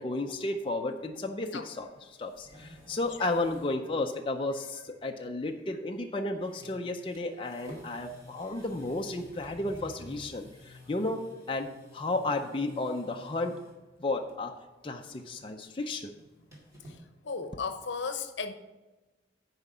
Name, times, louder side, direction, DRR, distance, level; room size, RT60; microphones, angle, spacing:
voice 1, 0.0-13.6 14.0-14.5 14.8-16.1, left 2 dB, 25° left, 3 dB, 0.5 m, -33 dB
sound 1, 2.0-3.8 4.1-4.2 5.9-6.1 6.4-13.8 14.2-14.6 14.9-17.0, equal, 15° right, 2.0 m, -51 dB
voice 2, 17.2-18.5, left 5 dB, 70° left, 8 dB, 0.8 m, -34 dB
9.6 x 4.9 x 5.5 m, 1.1 s
head